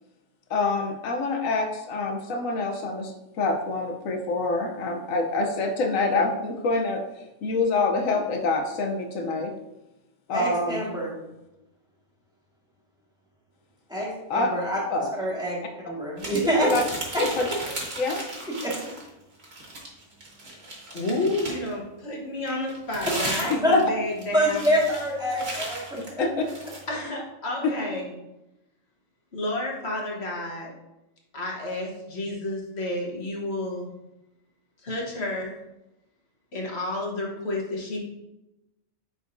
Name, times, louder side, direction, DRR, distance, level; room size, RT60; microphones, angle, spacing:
voice 1, 0.5-3.1 3.4-7.0 7.4-9.5 10.3-10.8 14.3-14.5 14.9-15.1 16.6-16.8 17.2-17.5 18.0-18.2 23.5-23.8 26.2-26.3 27.6-27.7, left 3 dB, 85° left, 3 dB, 1.2 m, -25 dB
voice 2, 10.3-11.2 13.9-14.8 15.2-16.7 17.1-17.2 18.5-18.7 23.6-23.7 24.3-26.2, equal, 5° right, -5 dB, 1.6 m, -26 dB
sound 1, 16.2-19.1 19.4-21.7 22.5-26.8, right 1 dB, 50° right, 1.7 m, -36 dB
voice 3, 20.9-24.7 26.9-28.1 29.3-30.7 31.3-33.9 34.8-35.6 36.5-38.0, left 2 dB, 55° left, -1 dB, 1.4 m, -31 dB
9.3 x 3.9 x 2.6 m, 0.93 s
omnidirectional pair, 1.4 m